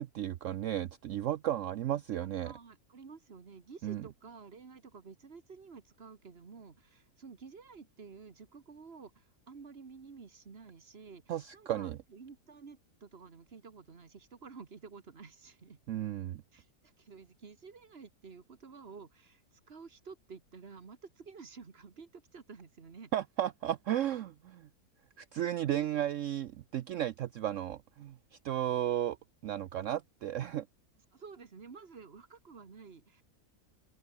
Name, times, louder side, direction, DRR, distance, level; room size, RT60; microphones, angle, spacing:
voice 1, 0.0-2.5 3.8-4.1 11.3-12.0 15.9-16.4 23.1-24.7 25.2-28.2 28.4-29.2 29.4-30.7, right 11 dB, 65° right, 0.9 m, -34 dB
voice 2, 2.1-15.8 16.5-23.1 25.3-25.9 31.1-33.2, right 5 dB, 40° right, 1.8 m, -51 dB
open air
omnidirectional pair, 1.6 m